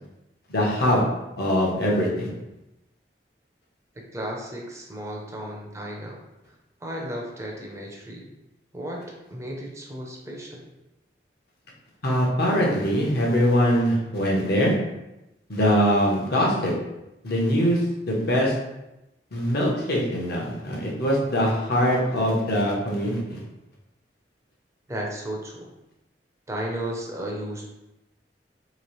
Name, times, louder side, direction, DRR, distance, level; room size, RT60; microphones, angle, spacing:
voice 1, 0.5-1.0 1.4-2.3 12.0-14.7 15.5-16.7 17.2-18.5 19.3-23.4, equal, 65° left, -2 dB, 0.8 m, -22 dB
voice 2, 4.0-6.2 6.8-8.3 8.7-9.0 9.3-10.7 24.9-25.7 26.5-27.7, right 1 dB, 15° right, -1 dB, 0.6 m, -34 dB
3.0 x 2.9 x 3.0 m, 0.94 s
head